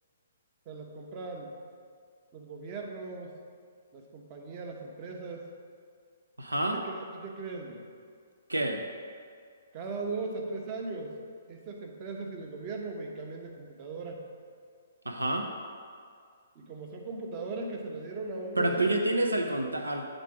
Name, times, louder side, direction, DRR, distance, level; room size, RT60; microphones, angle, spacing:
voice 1, 0.7-1.5 2.3-3.3 3.9-5.4 6.6-7.8 9.7-11.2 11.5-14.2 16.5-19.0, right 3 dB, 35° right, 1 dB, 0.9 m, -38 dB
voice 2, 6.4-6.8 8.5-8.8 15.1-15.5 18.6-20.0, right 1 dB, 85° right, 4 dB, 0.5 m, -28 dB
8.2 x 3.7 x 4.8 m, 2.2 s
figure-of-eight pair, 125°, 0 cm